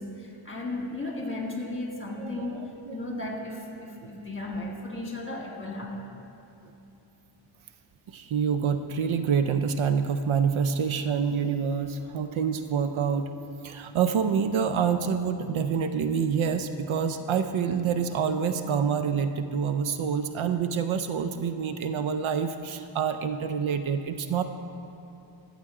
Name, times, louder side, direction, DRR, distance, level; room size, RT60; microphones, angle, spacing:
voice 1, 0.0-6.0, left 2 dB, 25° left, 0 dB, 1.5 m, -35 dB
voice 2, 2.2-3.2 4.0-4.1 8.1-24.4, right 6 dB, 80° right, 9 dB, 0.5 m, -27 dB
13.5 x 7.4 x 3.7 m, 2.9 s
wide cardioid pair, 115°, 47 cm